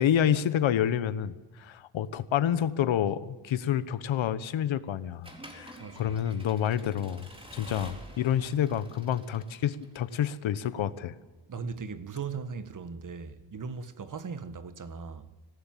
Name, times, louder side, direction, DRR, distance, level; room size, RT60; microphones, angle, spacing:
voice 1, 0.0-11.1, left 9 dB, 65° left, 1.3 m, -28 dB
Accelerating revving vroom / Mechanisms, 5.2-10.1, equal, 10° right, 4.1 m, -48 dB
voice 2, 5.8-6.1 11.5-15.3, right 5 dB, 40° right, 1.7 m, -38 dB
26.0 x 17.5 x 7.6 m
cardioid pair, 115°, 50 cm